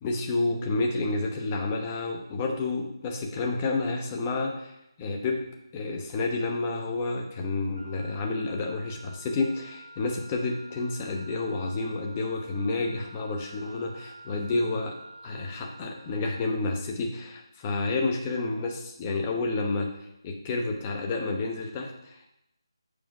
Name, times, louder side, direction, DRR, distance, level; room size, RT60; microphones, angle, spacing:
voice 1, 0.0-5.4 5.7-14.9 15.2-19.9 20.2-22.3, left 3 dB, 20° left, 1 dB, 0.9 m, -30 dB
Wind instrument woodwind instrument, 7.7-16.6, right 2 dB, 25° right, 2.6 m, -49 dB
7.8 x 5.0 x 4.8 m, 0.84 s
figure-of-eight pair, 165°, 3 cm